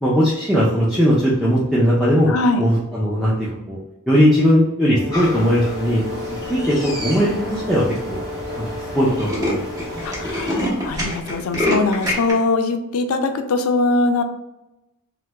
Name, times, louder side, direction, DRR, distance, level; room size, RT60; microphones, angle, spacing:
voice 1, 0.0-2.3 2.6-3.8 4.1-6.2 6.5-8.2 8.6-9.6 9.9-10.1, equal, ahead, -8 dB, 0.4 m, -18 dB
voice 2, 2.3-2.6 10.0-14.2, left 3 dB, 90° left, 7 dB, 0.4 m, -21 dB
Brass instrument, 4.9-10.9, left 2 dB, 70° right, 0.5 m, -34 dB
sound 1, 5.1-10.7, left 1 dB, 15° left, 0.9 m, -33 dB
Tools, 6.3-6.7 7.3-7.4 7.6-7.7 8.0-8.2 8.5-8.6 8.8-12.3, left 1 dB, 15° right, 0.8 m, -24 dB
3.0 x 2.1 x 3.3 m, 0.93 s
head